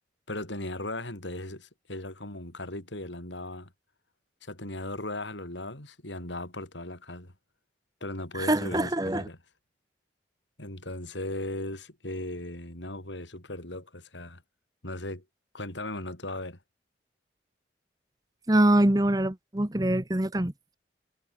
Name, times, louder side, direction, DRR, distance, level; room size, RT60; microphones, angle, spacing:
voice 1, 0.3-3.7 4.4-7.3 8.0-9.4 10.6-14.4 14.8-15.2 15.5-16.6, left 1 dB, 85° left, 5.9 m, -37 dB
voice 2, 8.3-9.2 18.5-20.8, right 1 dB, 20° right, 1.0 m, -24 dB
head